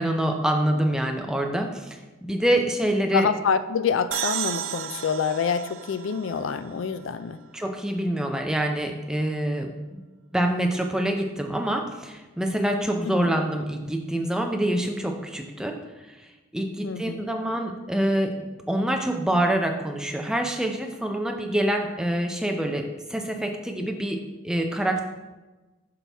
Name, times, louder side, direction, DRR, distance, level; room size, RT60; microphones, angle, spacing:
voice 1, 0.0-3.3 7.5-10.0 10.3-15.8 16.1-25.0, right 1 dB, 5° right, 3 dB, 0.5 m, -26 dB
voice 2, 3.1-7.4 16.8-17.2, left 6 dB, 65° left, 12 dB, 0.4 m, -26 dB
sound 1, 4.1-7.7, right 11 dB, 70° right, 0.3 m, -34 dB
8.4 x 5.8 x 3.5 m, 1.2 s
head